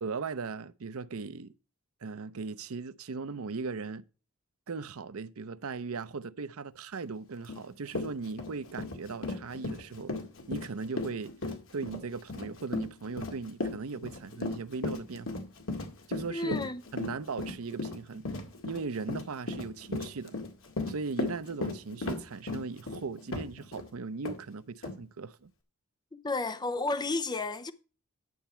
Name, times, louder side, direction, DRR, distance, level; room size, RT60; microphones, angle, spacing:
voice 1, 0.0-1.5 2.0-4.1 4.7-10.1 10.5-11.3 11.7-15.3 16.1-16.6 16.9-18.3 18.7-20.4 20.9-25.5, right 4 dB, 80° right, 0.6 m, -38 dB
Run, 7.5-7.6 7.9-23.9 24.2-24.4 24.8-25.0, left 2 dB, 65° left, 2.0 m, -36 dB
voice 2, 16.3-16.8 26.1-27.7, left 3 dB, 20° left, 0.7 m, -32 dB
11.0 x 7.1 x 4.4 m
head